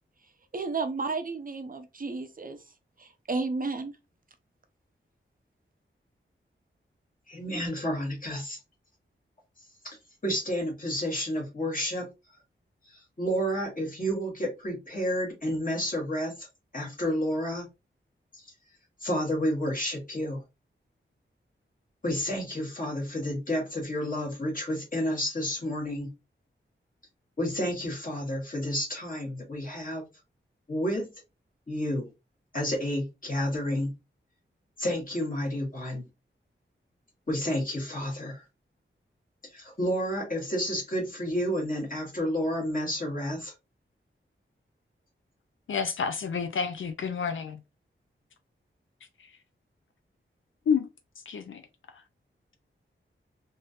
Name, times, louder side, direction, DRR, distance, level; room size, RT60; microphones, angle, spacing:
voice 1, 0.5-2.6 3.0-3.9, right 3 dB, 45° right, 0.6 m, -32 dB
voice 2, 7.3-8.6 9.8-10.0 10.2-12.1 12.8-16.5 16.7-17.7 19.0-20.4 22.0-26.1 27.4-30.0 30.7-31.1 31.7-32.1 32.5-33.9 34.8-36.1 37.3-38.4 39.4-43.5, equal, 40° left, 1.6 m, -30 dB
voice 3, 45.7-47.6 50.7-50.9 51.3-51.6, left 6 dB, 75° left, 0.4 m, -29 dB
3.6 x 2.7 x 2.4 m
wide cardioid pair, 105°, 21 cm